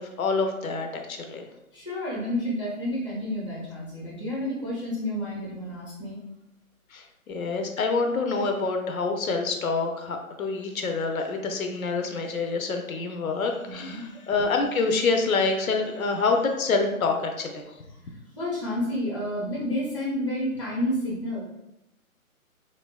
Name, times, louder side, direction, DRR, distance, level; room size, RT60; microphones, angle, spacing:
voice 1, 0.0-1.4 6.9-17.6, left 4 dB, 70° left, 4 dB, 0.6 m, -27 dB
voice 2, 1.7-6.2 13.6-14.0 18.4-21.4, left 1 dB, 20° left, -5 dB, 0.6 m, -30 dB
3.8 x 2.1 x 2.2 m, 0.91 s
hypercardioid pair, 160°, 43 cm